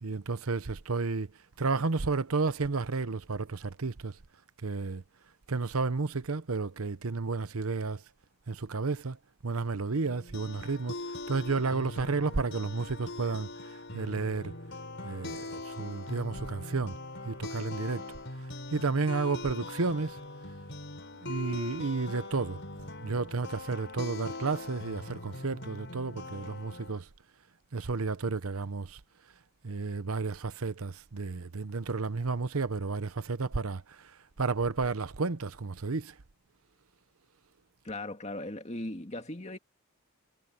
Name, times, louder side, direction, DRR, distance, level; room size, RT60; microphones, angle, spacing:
voice 1, 0.0-1.3 1.6-4.1 4.6-5.0 5.5-8.0 8.5-9.2 9.4-10.9 11.3-13.5 13.9-14.5 15.0-17.0 17.2-18.0 18.7-20.2 21.2-22.6 23.0-27.1 27.7-29.0 29.6-34.1 34.4-36.1, right 4 dB, 80° right, 0.9 m, -32 dB
sound 1, 10.1-27.0, left 2 dB, 55° left, 6.3 m, -42 dB
voice 2, 37.8-39.6, left 1 dB, 30° left, 2.2 m, -38 dB
head